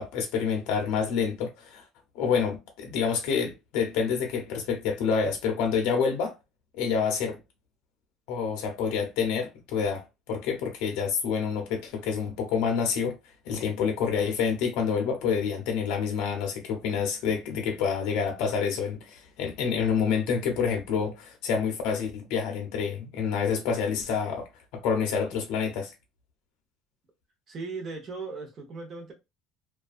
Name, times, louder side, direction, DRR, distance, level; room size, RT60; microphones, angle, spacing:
voice 1, 0.0-1.8 2.1-6.3 6.7-7.4 8.3-13.2 13.5-24.5 24.7-25.9, left 6 dB, 75° left, 0.6 m, -28 dB
voice 2, 27.5-29.1, right 4 dB, 35° right, 0.8 m, -37 dB
2.4 x 2.2 x 2.4 m
cardioid pair, 150°, 0 cm